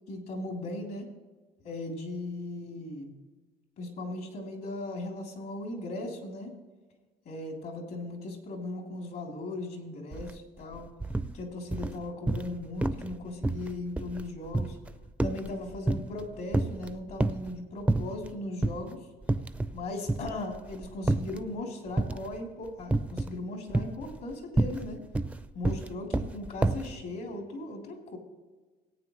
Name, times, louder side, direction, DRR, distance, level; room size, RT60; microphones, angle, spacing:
voice 1, 0.1-1.1 1.6-3.1 3.8-6.6 7.3-10.9 11.3-14.8 15.2-19.1 19.7-25.0 25.5-28.2, left 2 dB, 65° left, 1 dB, 3.4 m, -38 dB
sound 1, 10.1-10.3 10.6-11.3 11.7-12.5 12.8-13.1 13.4-16.2 16.5-17.5 17.9-18.3 18.6-18.8 19.2-19.8 20.1-21.4 22.0-22.4 22.9-23.4 23.7-26.9, right 2 dB, 10° right, 0.5 m, -29 dB
18.5 x 9.0 x 3.2 m, 1.3 s
cardioid pair, 110°, 17 cm